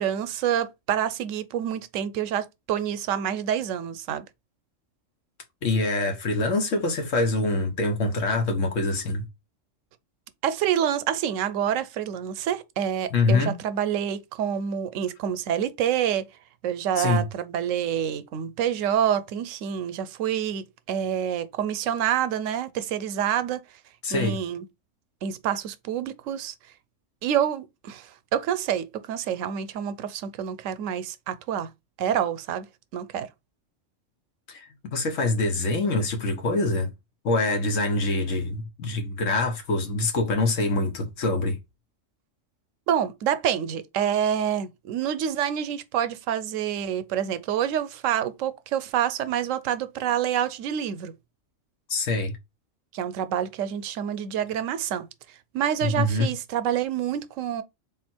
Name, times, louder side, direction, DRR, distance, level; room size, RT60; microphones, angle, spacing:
voice 1, 0.0-4.2 10.4-16.2 16.6-23.6 24.1-24.7 25.2-26.5 27.2-31.7 32.0-32.7 32.9-33.3 42.9-51.1 52.9-55.1 55.5-57.6, right 9 dB, 90° right, 1.0 m, -27 dB
voice 2, 5.6-9.2 13.1-13.6 17.0-17.3 24.0-24.4 34.5-34.7 34.9-36.9 37.2-41.6 51.9-52.4 55.8-56.3, left 2 dB, 75° left, 1.4 m, -25 dB
3.9 x 2.5 x 4.3 m
omnidirectional pair, 1.3 m